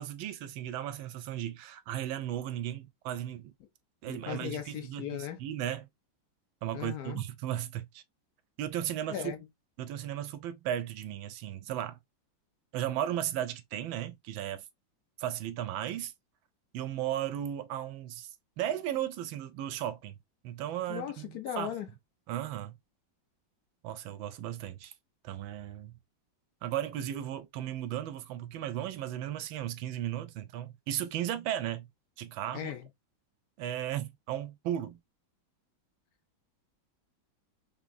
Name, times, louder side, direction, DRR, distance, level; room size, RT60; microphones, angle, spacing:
voice 1, 0.0-3.5 4.0-5.1 5.4-5.9 6.6-8.0 8.6-9.3 9.8-12.0 12.7-14.6 15.2-16.1 16.7-18.3 18.6-20.2 20.4-21.7 22.3-22.8 23.8-24.9 25.2-26.0 26.6-31.9 32.2-32.7 33.6-35.0, right 11 dB, 80° right, 1.3 m, -35 dB
voice 2, 4.1-5.4 6.7-7.2 9.1-9.4 20.9-21.9 32.5-32.9, left 10 dB, 70° left, 0.9 m, -37 dB
3.6 x 2.5 x 2.3 m
omnidirectional pair, 2.1 m